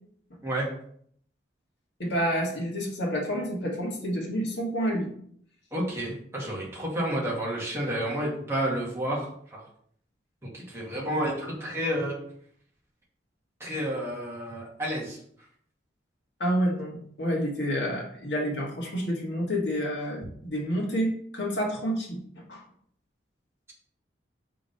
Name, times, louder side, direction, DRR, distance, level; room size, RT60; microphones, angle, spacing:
voice 1, 2.0-5.1 16.4-22.2 22.5-22.6, equal, 70° left, -2 dB, 2.0 m, -29 dB
voice 2, 5.7-9.6 10.4-12.1 13.6-15.2, right 1 dB, 15° right, -5 dB, 1.9 m, -30 dB
5.0 x 3.7 x 5.4 m, 0.63 s
head